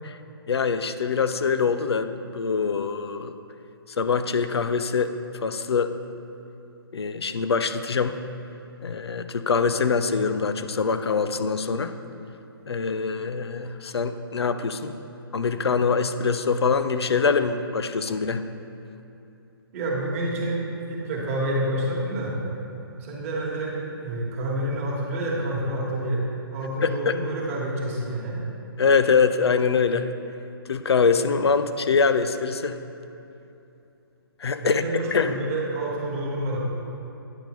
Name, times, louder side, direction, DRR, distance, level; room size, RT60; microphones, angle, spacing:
voice 1, 0.5-3.3 4.0-5.1 5.4-5.9 6.9-8.2 8.8-11.9 12.7-14.9 15.3-18.4 26.8-27.1 28.8-30.1 30.7-32.8 34.4-34.8 35.1-35.4, left 5 dB, 90° left, 10 dB, 0.4 m, -24 dB
voice 2, 19.7-20.6 20.9-22.3 23.0-28.4 34.6-36.6, right 1 dB, 35° right, -3 dB, 1.3 m, -28 dB
9.0 x 5.2 x 3.0 m, 2.8 s
hypercardioid pair, 150°, 13 cm